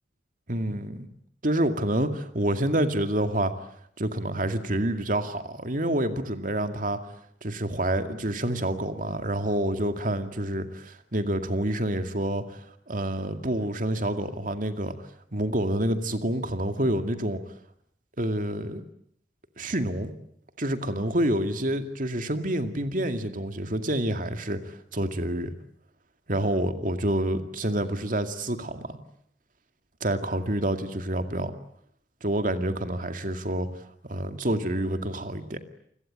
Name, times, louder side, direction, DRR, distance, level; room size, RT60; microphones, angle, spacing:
voice 1, 0.5-1.1 1.4-3.5 4.0-7.0 7.4-12.6 12.9-14.9 15.3-17.4 18.2-18.8 19.6-20.1 20.6-25.5 26.3-28.9 30.0-31.5 32.2-33.7 34.0-35.6, right 1 dB, 50° right, 8 dB, 2.2 m, -28 dB
29.0 x 21.0 x 8.9 m, 0.69 s
head